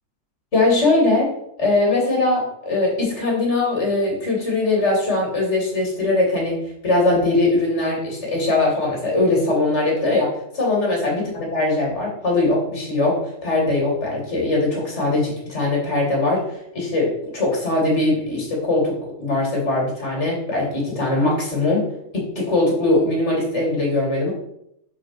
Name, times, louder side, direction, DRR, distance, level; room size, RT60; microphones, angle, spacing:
voice 1, 0.5-1.3 1.6-6.6 6.8-18.9 19.2-21.9 22.1-24.3, left 2 dB, 30° left, -3 dB, 2.7 m, -21 dB
4.9 x 4.8 x 5.9 m, 0.76 s
omnidirectional pair, 2.3 m